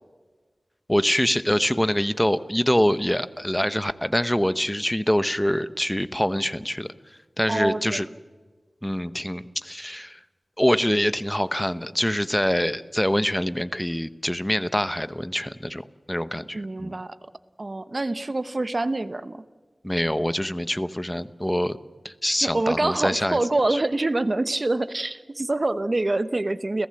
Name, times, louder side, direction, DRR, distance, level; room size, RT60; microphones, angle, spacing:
voice 1, 0.9-6.9 7.4-8.1 8.8-10.2 10.6-16.9 19.8-21.8 22.0-23.4 23.7-23.8, equal, 10° left, 13 dB, 0.9 m, -25 dB
voice 2, 7.5-8.0 16.5-17.2 17.6-19.4 22.4-26.9, right 2 dB, 45° right, 13 dB, 1.0 m, -26 dB
30.0 x 15.5 x 7.7 m, 1.4 s
wide cardioid pair, 75°, 0 cm